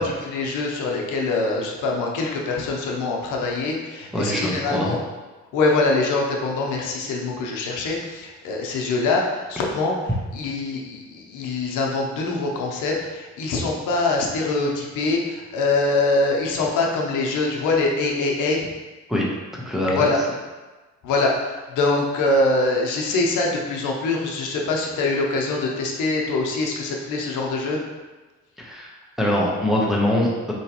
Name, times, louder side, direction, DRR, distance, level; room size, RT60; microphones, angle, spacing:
voice 1, 0.0-5.0 5.5-10.0 10.3-18.7 19.9-20.2 21.0-27.8, left 3 dB, 85° left, -1 dB, 0.8 m, -24 dB
voice 2, 4.1-5.0 19.1-19.2 19.5-20.0 28.6-30.5, left 1 dB, ahead, -4 dB, 0.9 m, -23 dB
4.6 x 3.0 x 2.9 m, 1.2 s
cardioid pair, 90°, 30 cm